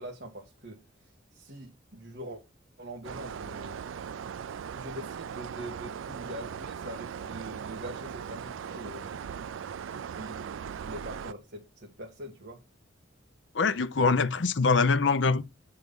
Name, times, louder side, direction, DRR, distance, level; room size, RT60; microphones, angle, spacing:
voice 1, 0.0-2.4 2.8-3.8 4.7-12.6, equal, 55° right, 1.6 m, -44 dB
sound 1, 3.0-11.3, right 7 dB, 85° right, 0.4 m, -39 dB
voice 2, 13.5-15.4, left 4 dB, 65° left, 0.6 m, -24 dB
9.3 x 4.7 x 5.4 m
head